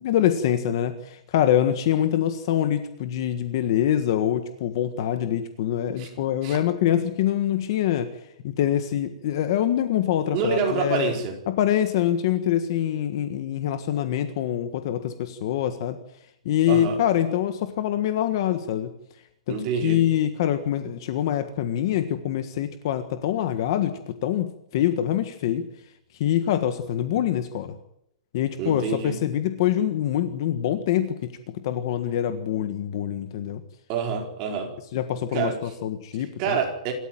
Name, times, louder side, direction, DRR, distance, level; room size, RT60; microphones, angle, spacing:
voice 1, 0.0-8.1 8.4-11.1 11.5-16.0 16.4-18.9 19.5-19.6 19.8-25.7 26.1-27.7 28.3-33.6 34.9-36.6, left 11 dB, 35° left, 1.6 m, -25 dB
voice 2, 10.3-11.3 16.7-17.0 19.5-20.0 28.6-29.2 33.9-34.7 35.3-35.6 36.4-36.9, right 6 dB, 25° right, 4.5 m, -27 dB
27.5 x 13.5 x 9.1 m
hypercardioid pair, 180°, 4 cm